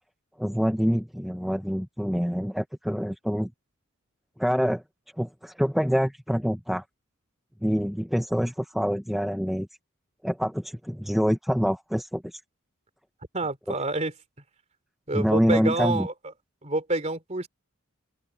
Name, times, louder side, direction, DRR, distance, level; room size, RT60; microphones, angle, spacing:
voice 1, 0.4-3.5 4.4-4.8 5.2-6.8 7.6-9.7 10.2-12.3 15.1-16.1, equal, ahead, 0.9 m, -26 dB
voice 2, 13.3-14.1 15.1-16.1 16.6-17.5, right 2 dB, 30° right, 3.1 m, -27 dB
open air
head